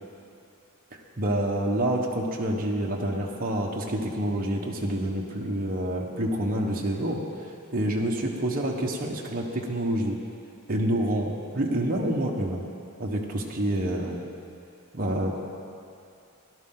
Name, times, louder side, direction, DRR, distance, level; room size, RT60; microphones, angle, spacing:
voice 1, 1.2-7.2 7.7-10.2 10.7-12.6 13.0-14.2 14.9-15.5, right 1 dB, 45° right, -1 dB, 1.2 m, -27 dB
17.5 x 11.5 x 3.8 m, 2.5 s
head